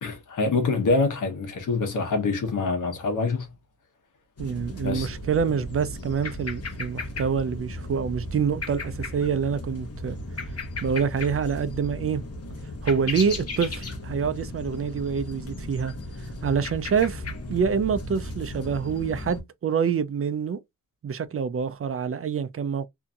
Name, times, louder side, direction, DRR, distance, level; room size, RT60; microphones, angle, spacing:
voice 1, 0.0-3.5 4.8-5.1, left 3 dB, 80° left, 1.0 m, -25 dB
sound 1, 4.4-19.4, left 2 dB, 50° left, 1.0 m, -35 dB
voice 2, 4.4-10.2 10.8-12.2 12.8-15.9 16.4-17.2 17.5-20.6 21.0-22.9, right 6 dB, 45° right, 0.5 m, -26 dB
2.8 x 2.6 x 2.4 m
cardioid pair, 75°, 31 cm